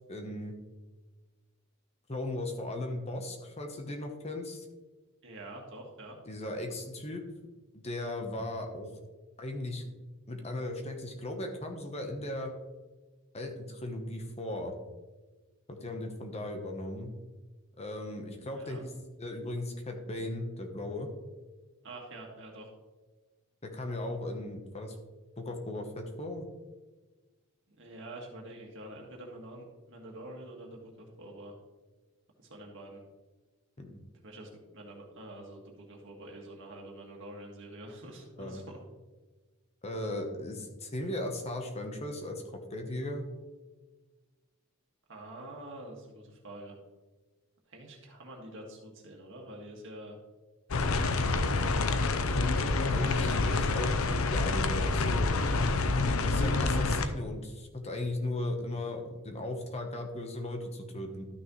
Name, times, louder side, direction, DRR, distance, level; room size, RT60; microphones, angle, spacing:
voice 1, 0.1-0.6 2.1-4.7 6.3-7.2 7.7-8.9 9.4-9.9 10.3-12.5 13.3-14.7 15.7-17.1 17.8-18.9 19.2-21.1 23.6-24.9 25.4-26.5 33.8-34.0 38.4-38.6 39.8-43.2 52.9-54.0 54.3-55.3 56.2-61.3, left 1 dB, 30° left, 4 dB, 1.0 m, -37 dB
voice 2, 5.2-6.2 18.5-18.8 21.8-22.7 27.7-31.5 32.4-33.0 34.2-38.8 45.1-46.8 47.7-50.2, right 1 dB, 60° right, 0 dB, 1.9 m, -46 dB
sound 1, 50.7-57.1, left 3 dB, 65° left, 0.7 m, -27 dB
12.5 x 6.2 x 3.1 m, 1.2 s
head